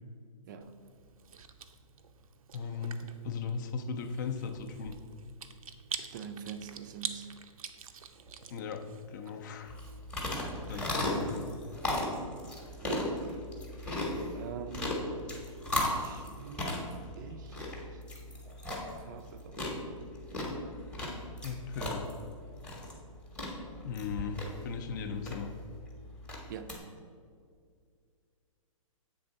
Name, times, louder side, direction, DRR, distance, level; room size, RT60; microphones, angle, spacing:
Chewing mastication, 0.6-10.8, right 6 dB, 85° right, 0.6 m, -46 dB
voice 1, 2.5-5.0 8.5-9.8 10.2-11.5 21.4-22.1 23.8-25.5, left 5 dB, 35° left, 8 dB, 0.4 m, -38 dB
voice 2, 6.0-7.3 10.7-10.9 12.8-13.5 14.3-15.1 15.7-18.0 18.7-19.7 26.5-26.8, right 7 dB, 35° right, 9 dB, 0.4 m, -45 dB
sound 1, 9.7-26.8, left 1 dB, 5° left, 0.8 m, -36 dB
7.8 x 3.6 x 5.2 m, 2.2 s
hypercardioid pair, 160°, 18 cm